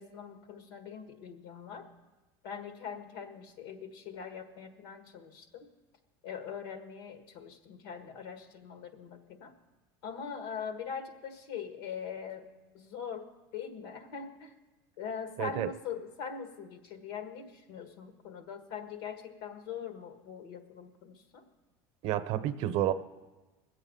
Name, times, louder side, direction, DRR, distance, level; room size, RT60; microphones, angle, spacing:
voice 1, 0.0-1.9 2.4-5.7 6.2-9.5 10.0-12.5 12.7-13.3 13.5-14.5 15.0-21.4, left 7 dB, 80° left, 7 dB, 1.6 m, -42 dB
voice 2, 15.4-15.7 22.0-22.9, right 12 dB, 55° right, 12 dB, 0.7 m, -30 dB
20.5 x 8.1 x 5.4 m, 1.2 s
supercardioid pair, 120°, 12 cm